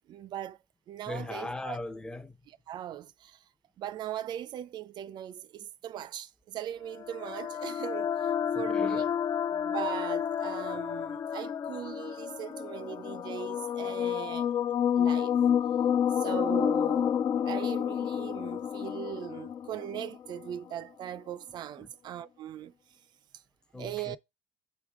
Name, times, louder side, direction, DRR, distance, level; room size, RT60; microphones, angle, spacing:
voice 1, 0.1-0.6 0.9-1.8 2.5-3.4 3.8-9.1 9.5-14.5 14.9-15.4 16.1-22.7 23.3-23.4 23.8-24.2, right 11 dB, 55° right, 0.4 m, -39 dB
voice 2, 1.1-2.4 8.5-9.0 23.7-24.2, left 2 dB, 10° left, 0.6 m, -39 dB
sound 1, 6.9-20.6, left 8 dB, 40° left, 0.3 m, -30 dB
7.7 x 3.4 x 3.7 m
supercardioid pair, 80°, 9 cm